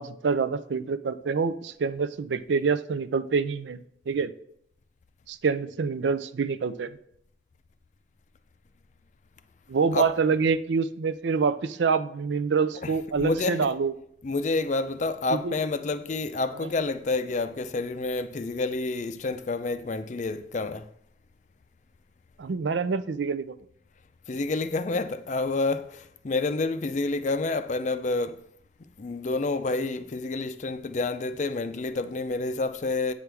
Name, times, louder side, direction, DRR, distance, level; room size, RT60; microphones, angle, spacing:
voice 1, 0.0-3.8 4.1-4.3 5.3-7.0 9.7-13.9 15.3-15.6 16.5-16.7 22.4-23.6, right 5 dB, 75° right, 0.4 m, -26 dB
voice 2, 13.2-13.6 14.2-20.8 24.3-25.9 26.2-28.4 29.0-33.1, left 3 dB, 40° left, 0.4 m, -28 dB
8.2 x 6.1 x 3.4 m
head